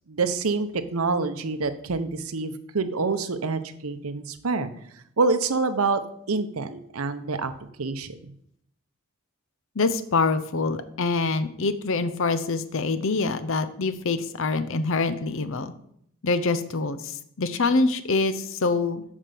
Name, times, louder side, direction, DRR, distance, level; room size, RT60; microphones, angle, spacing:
voice 1, 0.1-4.7 5.2-6.0 6.3-7.5 7.8-8.3, right 4 dB, 90° right, 10 dB, 0.8 m, -26 dB
voice 2, 9.8-15.7 16.2-19.0, left 3 dB, 65° left, 12 dB, 0.7 m, -25 dB
7.4 x 5.3 x 6.9 m, 0.70 s
head